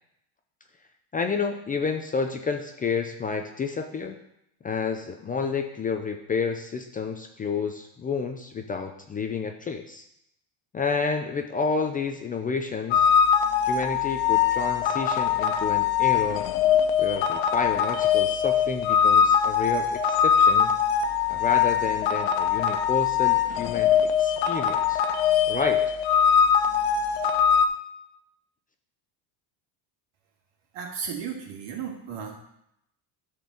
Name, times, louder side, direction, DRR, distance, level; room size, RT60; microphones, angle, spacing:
voice 1, 1.1-4.2 4.6-10.0 10.7-13.1 13.7-16.5 17.0-20.8 21.3-25.0 25.5-25.8, left 5 dB, 20° left, 5 dB, 0.5 m, -30 dB
sound 1, 12.9-27.7, left 8 dB, 75° left, 1.0 m, -22 dB
voice 2, 30.7-32.4, right 7 dB, 65° right, 1 dB, 2.5 m, -34 dB
11.5 x 4.5 x 6.2 m, 0.79 s
cardioid pair, 145°, 45 cm